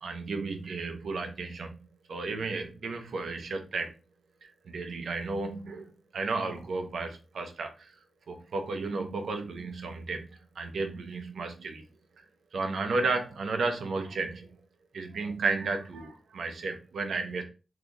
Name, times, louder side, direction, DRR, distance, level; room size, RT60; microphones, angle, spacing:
voice 1, 0.0-3.9 4.4-7.9 8.3-10.3 10.6-11.8 12.5-14.5 14.9-17.4, right 3 dB, 85° right, 5 dB, 0.6 m, -33 dB
2.8 x 2.3 x 3.7 m, 0.32 s
wide cardioid pair, 115°, 0 cm